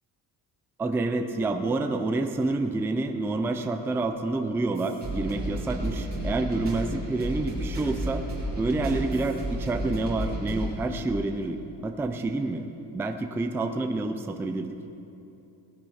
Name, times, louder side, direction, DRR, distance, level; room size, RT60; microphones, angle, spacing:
voice 1, 0.8-8.2 8.6-12.6 12.9-14.7, right 2 dB, 5° right, 6 dB, 0.3 m, -28 dB
sound 1, 4.8-10.7, right 1 dB, 20° right, 2.8 m, -32 dB
18.0 x 10.0 x 4.2 m, 2.8 s
cardioid pair, 170°, 42 cm